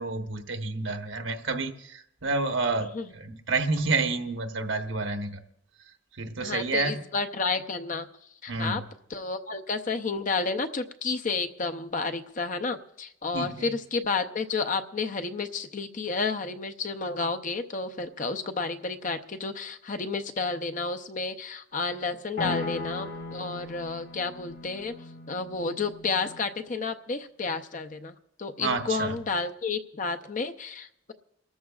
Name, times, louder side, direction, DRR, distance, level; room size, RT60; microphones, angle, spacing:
voice 1, 0.0-5.3 6.2-7.0 8.5-8.8 13.3-13.7 28.6-29.1, right 3 dB, 75° right, 5 dB, 1.1 m, -29 dB
voice 2, 6.4-8.1 8.4-8.8 9.1-24.9 25.3-31.1, left 4 dB, 40° left, 8 dB, 0.6 m, -31 dB
sound 1, 22.4-26.5, left 2 dB, 75° left, 3.5 m, -37 dB
29.0 x 13.5 x 2.4 m, 0.73 s
head